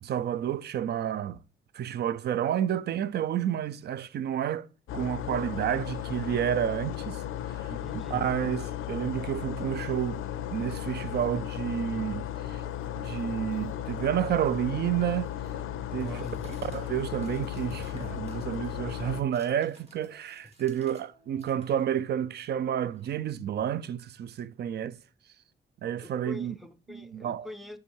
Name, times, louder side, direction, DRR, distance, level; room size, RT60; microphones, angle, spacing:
voice 1, 0.0-1.4 1.7-4.7 4.9-7.2 7.5-7.7 8.1-10.2 10.5-12.6 13.0-15.3 15.9-16.2 16.7-25.0 25.8-26.6 26.9-27.5, right 10 dB, 55° right, 0.4 m, -30 dB
sound 1, 4.9-19.2, left 11 dB, 90° left, 0.4 m, -35 dB
sound 2, 5.4-6.1 6.4-14.4 14.8-16.1 16.4-16.8 17.1-20.5 20.8-21.4 21.9-22.0, right 4 dB, 90° right, 1.4 m, -59 dB
voice 2, 7.7-8.3 15.9-16.7 20.4-20.5 26.0-27.8, left 1 dB, ahead, 0.5 m, -44 dB
sound 3, 14.6-21.1 21.4-23.6, right 2 dB, 30° right, 1.7 m, -61 dB
6.9 x 3.7 x 4.6 m
cardioid pair, 125°, 20 cm